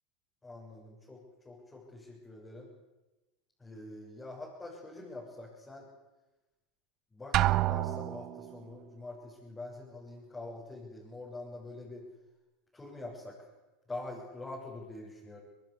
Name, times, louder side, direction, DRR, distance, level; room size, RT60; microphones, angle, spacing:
voice 1, 0.4-2.7 3.6-5.9 7.1-12.1 12.7-13.5 13.9-15.4, left 2 dB, 15° left, -5 dB, 7.3 m, -45 dB
Drum, 7.3-8.5, right 16 dB, 45° right, 0.8 m, -28 dB
23.5 x 21.0 x 8.3 m, 1.1 s
hypercardioid pair, 90°, 0 cm